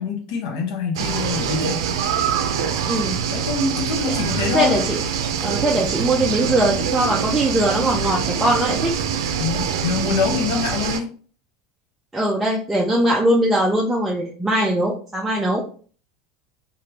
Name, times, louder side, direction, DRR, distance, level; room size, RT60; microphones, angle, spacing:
voice 1, 0.0-1.9 3.3-4.8 9.4-11.1, left 5 dB, 70° left, 2 dB, 0.8 m, -24 dB
sound 1, 1.0-11.0, right 7 dB, 85° right, 0.4 m, -24 dB
voice 2, 2.8-3.2 4.1-4.2 4.5-5.0 5.4-8.9 12.1-15.6, right 1 dB, 5° right, -3 dB, 0.4 m, -21 dB
3.2 x 2.4 x 2.8 m, 0.42 s
supercardioid pair, 160°, 2 cm